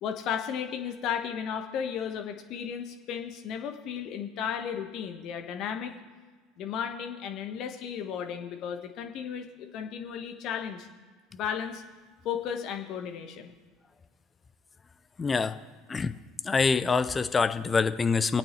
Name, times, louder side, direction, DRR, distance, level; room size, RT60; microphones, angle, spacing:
voice 1, 0.0-5.9 6.6-10.9 11.3-11.8 12.2-13.5, left 8 dB, 50° left, 5 dB, 1.3 m, -34 dB
voice 2, 15.2-15.6 15.9-16.1 16.4-18.4, left 5 dB, 20° left, 12 dB, 0.6 m, -25 dB
26.0 x 8.7 x 3.2 m, 1.4 s
figure-of-eight pair, 70°, 0 cm